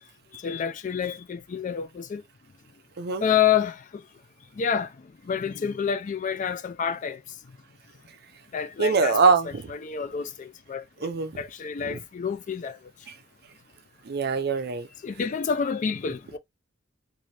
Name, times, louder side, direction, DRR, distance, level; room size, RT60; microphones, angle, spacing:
voice 1, 0.3-2.2 3.2-4.0 4.6-4.9 5.2-7.2 8.5-9.2 9.7-11.1 11.4-12.8 15.0-16.4, left 7 dB, 35° left, 0.3 m, -28 dB
voice 2, 8.8-9.6 11.0-11.3 11.8-12.0 14.1-14.9, right 4 dB, 50° right, 0.5 m, -23 dB
4.1 x 2.5 x 3.2 m
head